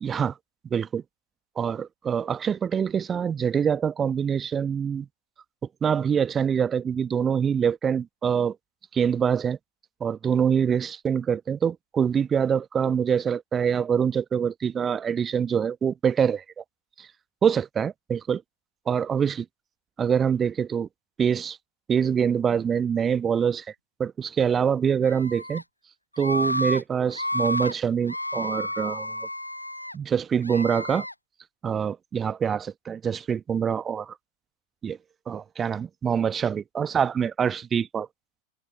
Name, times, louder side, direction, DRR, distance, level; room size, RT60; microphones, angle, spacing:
voice 1, 0.0-0.4 0.7-1.0 1.6-5.1 5.8-8.5 8.9-9.6 10.0-16.6 17.0-17.1 17.4-18.4 18.9-19.4 20.0-20.9 21.2-21.6 21.9-23.6 24.0-25.6 26.2-29.2 29.9-31.0 31.6-34.1 34.8-35.0 35.3-38.1, right 7 dB, 20° right, 1.2 m, -25 dB
Screaming, 25.0-25.6 26.2-26.8 27.1-27.7 28.1-29.9 30.4-31.1, left 1 dB, 85° left, 1.0 m, -30 dB
figure-of-eight pair, 90°, 0 cm